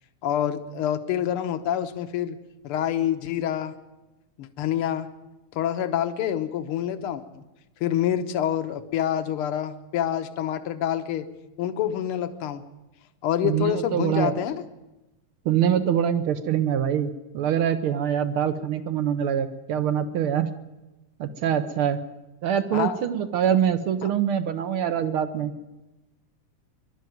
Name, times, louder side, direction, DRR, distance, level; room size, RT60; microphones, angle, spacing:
voice 1, 0.2-2.4 2.6-3.7 4.4-5.1 5.5-7.4 7.8-11.3 11.6-12.6 13.2-14.6 22.7-23.0 24.0-24.1, left 10 dB, 60° left, 9 dB, 1.6 m, -27 dB
voice 2, 13.4-14.3 15.4-20.5 21.2-22.0 22.4-25.5, right 9 dB, 65° right, 11 dB, 1.4 m, -24 dB
23.5 x 12.0 x 9.2 m, 1.0 s
omnidirectional pair, 3.3 m